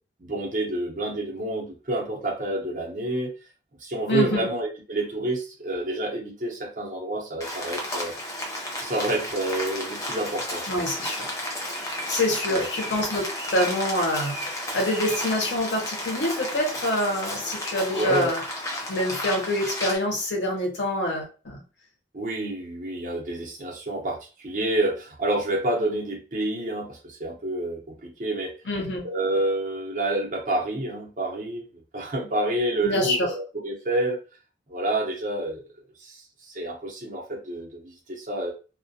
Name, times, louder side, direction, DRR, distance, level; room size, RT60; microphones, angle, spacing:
voice 1, 0.2-3.3 3.8-8.1 8.8-10.8 12.5-12.7 17.9-18.3 22.1-28.5 29.0-31.7 31.9-34.2 34.7-35.6 36.0-38.5, right 1 dB, 45° right, -1 dB, 0.7 m, -28 dB
voice 2, 4.1-4.5 10.7-11.3 12.1-18.4 18.9-21.6 28.7-29.0 32.8-33.3, left 1 dB, 85° left, 1 dB, 0.8 m, -26 dB
Rain, 7.4-20.0, left 1 dB, 20° left, 0.5 m, -33 dB
2.3 x 2.1 x 2.6 m, 0.34 s
head